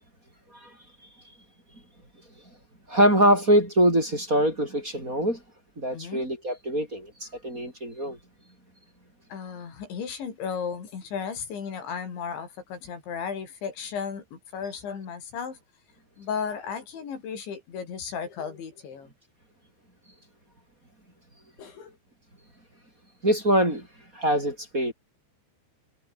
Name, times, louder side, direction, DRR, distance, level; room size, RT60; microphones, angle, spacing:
voice 1, 2.9-5.4 5.8-8.2 23.2-23.9 24.1-24.9, equal, 15° right, 6.0 m, -23 dB
voice 2, 5.9-6.3 9.3-15.6 16.2-19.1 21.6-22.0, left 6 dB, 75° left, 7.0 m, -35 dB
omnidirectional pair, 5.3 m